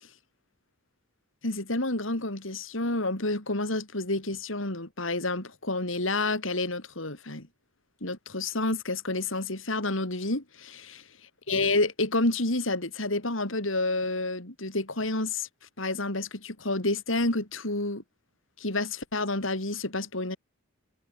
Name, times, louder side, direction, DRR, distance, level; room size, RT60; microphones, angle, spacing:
voice 1, 1.4-7.5 8.0-11.1 11.5-15.5 15.8-18.0 18.6-20.4, left 2 dB, 70° left, 4.7 m, -29 dB
head